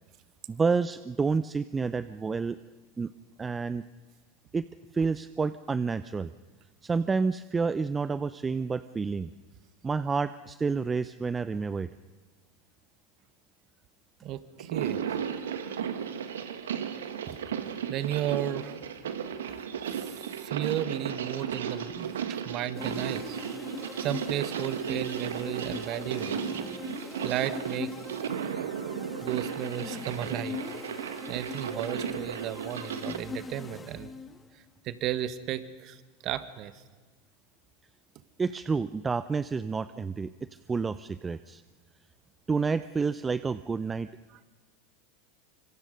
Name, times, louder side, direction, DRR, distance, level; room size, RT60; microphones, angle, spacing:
voice 1, 0.5-2.6 3.0-3.1 3.4-3.8 4.5-4.6 4.9-6.3 6.8-9.3 9.8-11.9 38.4-41.6 42.5-44.1, right 4 dB, 20° right, 15 dB, 0.6 m, -29 dB
voice 2, 14.2-15.0 17.3-17.4 17.9-18.8 20.0-23.4 24.0-26.4 27.2-27.9 29.2-30.6 31.3-34.1 34.8-36.7, right 12 dB, 45° right, 13 dB, 1.5 m, -34 dB
sound 1, 14.6-33.2, right 8 dB, 75° right, 1.7 m, -35 dB
sound 2, 22.7-34.5, left 4 dB, 15° left, 1.0 m, -41 dB
26.0 x 25.5 x 5.3 m, 1.4 s
hypercardioid pair, 90°, 0 cm